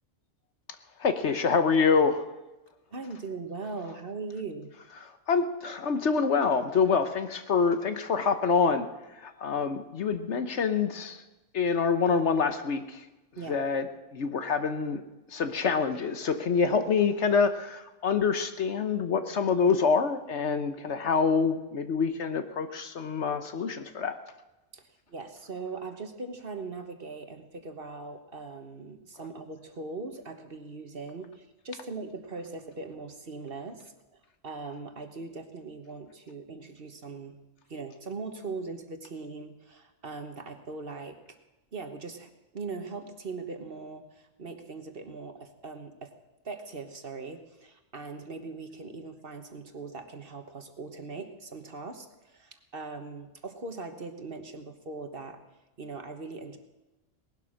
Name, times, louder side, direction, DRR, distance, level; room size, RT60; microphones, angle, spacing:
voice 1, 1.0-2.2 5.0-8.9 9.1-11.2 11.5-13.1 13.5-13.9 14.1-15.0 15.3-24.1, left 5 dB, 60° left, 9 dB, 1.2 m, -26 dB
voice 2, 2.9-4.7 13.4-13.6 24.7-24.8 25.1-33.9 34.4-37.3 37.7-41.2 41.7-46.1 46.4-55.4 55.8-56.6, right 3 dB, 45° right, 6 dB, 1.5 m, -40 dB
18.5 x 11.5 x 6.4 m, 1.1 s
omnidirectional pair, 1.3 m